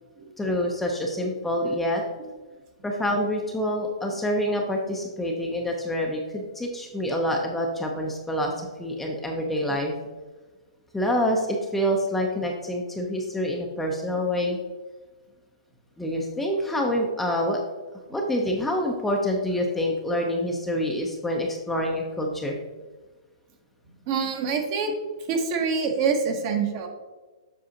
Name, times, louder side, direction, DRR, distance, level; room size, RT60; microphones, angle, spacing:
voice 1, 0.4-2.0 2.8-9.9 10.9-14.6 16.0-17.6 18.1-22.6, equal, 5° left, 0 dB, 0.5 m, -27 dB
voice 2, 24.1-24.9 25.3-26.9, right 5 dB, 35° right, 4 dB, 0.9 m, -26 dB
7.5 x 5.5 x 2.8 m, 1.3 s
hypercardioid pair, 150°, 3 cm